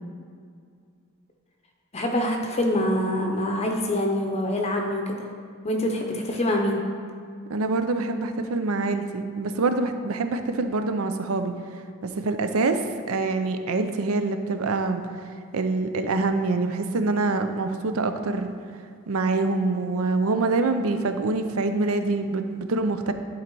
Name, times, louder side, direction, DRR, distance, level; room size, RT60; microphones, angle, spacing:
voice 1, 1.9-5.3 5.6-6.8, left 1 dB, 30° left, 2 dB, 0.6 m, -25 dB
voice 2, 7.5-11.5 12.0-12.8 13.1-15.0 15.5-18.5 19.1-23.1, right 3 dB, 80° right, 8 dB, 0.6 m, -25 dB
10.5 x 4.0 x 4.6 m, 2.2 s
head